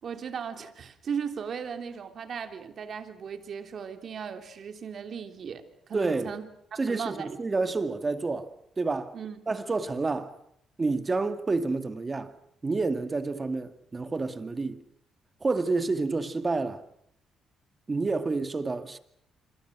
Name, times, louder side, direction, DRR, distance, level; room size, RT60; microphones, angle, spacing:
voice 1, 0.0-5.6 5.9-6.4 6.7-7.3 9.1-9.4, right 7 dB, 55° right, 3.2 m, -37 dB
voice 2, 5.9-6.3 6.8-9.2 9.5-10.4 10.8-12.3 12.6-14.8 15.4-16.8 17.9-19.0, right 3 dB, 25° right, 2.3 m, -29 dB
26.5 x 25.5 x 6.3 m
cardioid pair, 90°, 0 cm